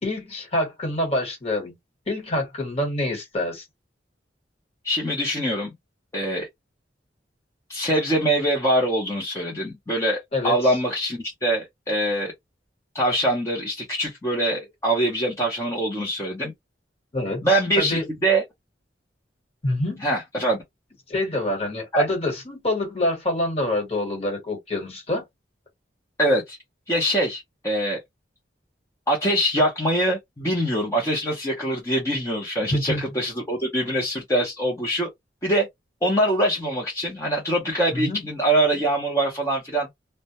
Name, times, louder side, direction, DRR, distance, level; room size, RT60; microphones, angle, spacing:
voice 1, 0.0-1.7 2.1-3.6 10.3-10.6 17.1-18.1 19.6-20.1 21.1-25.2 32.7-33.0 37.9-38.3, left 1 dB, 35° left, 1.2 m, -26 dB
voice 2, 4.8-5.7 6.1-6.5 7.7-12.3 12.9-16.5 17.4-18.4 20.0-20.6 21.9-22.0 26.2-26.6 26.9-28.0 29.1-35.1 35.4-35.7 36.0-39.9, right 1 dB, 15° left, 0.6 m, -23 dB
2.2 x 2.1 x 2.8 m
head